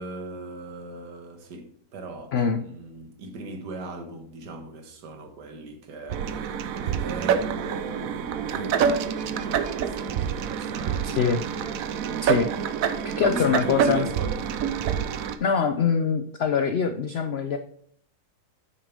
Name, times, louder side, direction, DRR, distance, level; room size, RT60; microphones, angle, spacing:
voice 1, 0.0-2.3 2.6-11.5 13.2-14.5, right 2 dB, 85° right, 1.8 m, -38 dB
voice 2, 2.3-2.6 11.0-11.4 12.2-12.5 13.2-14.1 15.4-17.6, left 6 dB, 80° left, 0.5 m, -24 dB
sound 1, 6.1-15.4, right 7 dB, 65° right, 1.0 m, -27 dB
8.7 x 6.7 x 3.5 m
omnidirectional pair, 1.8 m